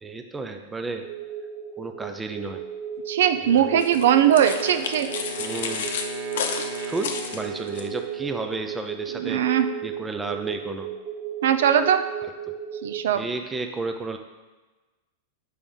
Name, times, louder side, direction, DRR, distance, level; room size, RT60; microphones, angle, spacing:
voice 1, 0.0-1.1 1.8-2.6 3.4-3.8 5.4-5.9 6.9-9.4 9.8-10.9 12.2-12.6 13.1-14.2, right 3 dB, 10° right, 5 dB, 0.4 m, -32 dB
sound 1, 1.0-13.0, right 8 dB, 40° right, 0.9 m, -35 dB
voice 2, 3.1-5.1 9.2-9.7 11.4-12.0 12.8-13.3, right 9 dB, 75° right, 9 dB, 0.5 m, -20 dB
Wind instrument woodwind instrument, 3.5-9.4, equal, 90° right, 1.2 m, -40 dB
sound 2, 3.8-7.9, left 6 dB, 70° left, 0.7 m, -32 dB
6.9 x 4.8 x 3.8 m, 1.2 s
supercardioid pair, 160°, 0 cm